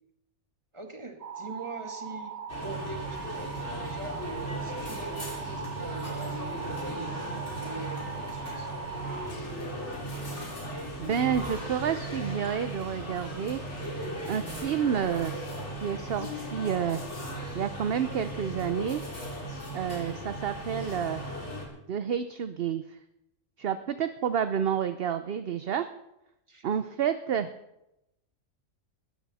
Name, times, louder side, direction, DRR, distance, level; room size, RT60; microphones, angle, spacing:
voice 1, 0.7-2.3 2.6-8.8 26.5-26.8, right 1 dB, 20° right, 4 dB, 1.9 m, -43 dB
sound 1, 1.2-9.3, right 6 dB, 85° right, 1.5 m, -40 dB
sound 2, 2.5-21.7, right 1 dB, 60° left, 3.8 m, -37 dB
Male speech man speaking, 5.0-17.0, equal, 15° left, 6.6 m, -52 dB
voice 2, 11.0-13.6 14.3-15.3 15.8-17.0 17.5-19.0 19.7-21.2 21.9-22.8 23.6-25.9 26.6-27.5, right 8 dB, 55° right, 11 dB, 0.8 m, -29 dB
19.0 x 13.5 x 4.2 m, 0.86 s
omnidirectional pair, 1.4 m